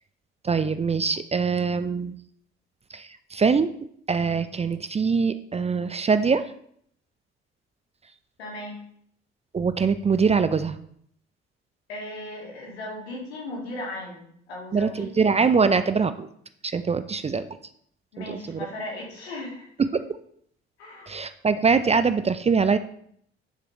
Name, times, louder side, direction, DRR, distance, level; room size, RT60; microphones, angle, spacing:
voice 1, 0.4-2.1 2.9-3.7 4.1-6.5 9.5-10.8 14.7-16.3 16.6-17.5 18.2-18.7 19.8-20.0 21.1-22.8, right 5 dB, 20° right, 12 dB, 0.5 m, -23 dB
voice 2, 8.4-8.8 11.9-15.3 15.6-15.8 18.1-19.7 20.8-21.2, left 1 dB, 75° left, -2 dB, 2.1 m, -37 dB
9.9 x 7.0 x 3.0 m, 0.66 s
figure-of-eight pair, 50°, 32 cm